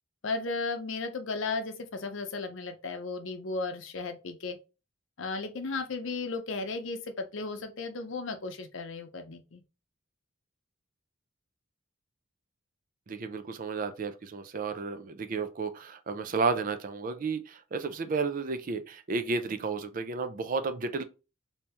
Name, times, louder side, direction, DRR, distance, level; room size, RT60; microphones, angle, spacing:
voice 1, 0.2-4.6 5.2-9.6, left 3 dB, 65° left, 0.6 m, -35 dB
voice 2, 13.1-21.0, right 4 dB, 40° right, 0.4 m, -32 dB
3.4 x 2.7 x 2.8 m
head